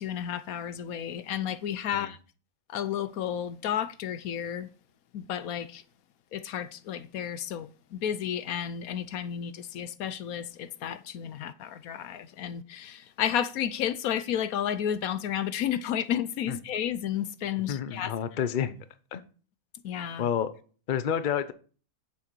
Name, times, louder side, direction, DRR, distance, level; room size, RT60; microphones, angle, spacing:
voice 1, 0.0-2.2 2.7-4.7 5.1-5.8 6.3-18.2 19.8-20.3, left 9 dB, 70° left, 1.1 m, -32 dB
voice 2, 17.7-18.8 19.1-19.2 20.2-20.5 20.9-21.5, left 8 dB, 50° left, 0.6 m, -29 dB
7.3 x 6.4 x 4.5 m
omnidirectional pair, 1.6 m